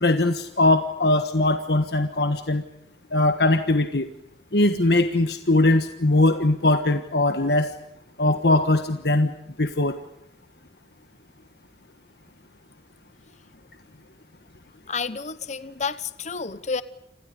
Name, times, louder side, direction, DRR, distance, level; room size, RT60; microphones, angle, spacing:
voice 1, 0.0-2.6 3.1-4.1 4.5-7.7 8.2-9.3 9.6-9.9, left 2 dB, 65° left, 8 dB, 1.5 m, -20 dB
voice 2, 14.9-16.8, left 5 dB, 40° left, 14 dB, 1.0 m, -30 dB
29.0 x 27.0 x 5.1 m, 0.80 s
head